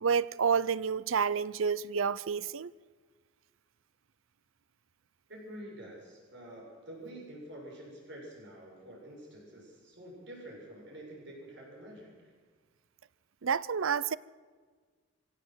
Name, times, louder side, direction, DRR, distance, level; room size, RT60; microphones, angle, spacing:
voice 1, 0.0-2.7 13.4-14.2, right 6 dB, 80° right, 0.6 m, -29 dB
voice 2, 5.3-12.3, right 1 dB, 55° right, 7.2 m, -48 dB
24.5 x 17.0 x 8.1 m
head